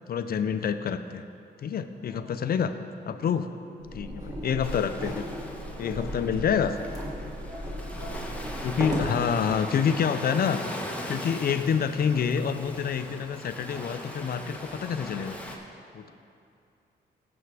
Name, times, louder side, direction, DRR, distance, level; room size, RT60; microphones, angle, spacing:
voice 1, 0.1-1.2 1.6-2.7 3.1-3.5 3.9-5.2 5.8-6.8 8.6-10.6 11.1-15.4 15.9-16.1, left 7 dB, 60° left, 10 dB, 0.5 m, -27 dB
voice 2, 1.9-2.6 3.1-3.3 3.6-4.3 5.5-6.3 7.0-8.5 9.6-10.3 16.0-16.1, equal, 60° right, -5 dB, 2.7 m, -48 dB
sound 1, 3.8-9.1, equal, 20° right, 2.4 m, -35 dB
Ocean, 4.6-15.6, left 1 dB, 5° left, 1.2 m, -40 dB
16.0 x 6.9 x 3.4 m, 2.5 s
cardioid pair, 85°, 18 cm